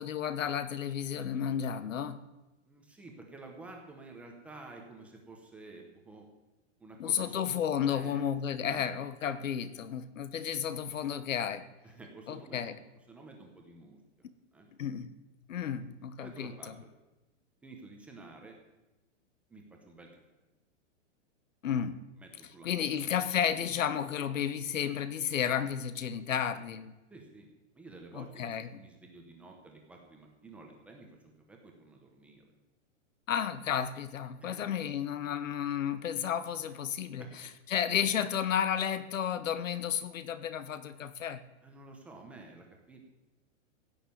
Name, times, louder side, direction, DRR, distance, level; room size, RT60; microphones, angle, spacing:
voice 1, 0.0-2.2 7.0-11.7 12.3-12.8 14.8-15.1 15.5-16.7 21.6-22.0 22.6-26.9 28.1-28.8 33.3-37.2 37.7-41.4, left 8 dB, 90° left, 1.4 m, -32 dB
voice 2, 2.7-6.3 6.8-7.5 7.9-8.3 8.6-8.8 11.8-12.7 13.1-14.3 14.5-14.7 16.2-16.9 17.6-18.6 19.5-20.2 22.2-22.9 27.1-27.5 27.7-32.5 34.4-34.6 37.2-37.4 41.6-43.0, right 2 dB, 5° right, 0.8 m, -51 dB
16.0 x 6.6 x 9.3 m
hypercardioid pair, 175°, 38 cm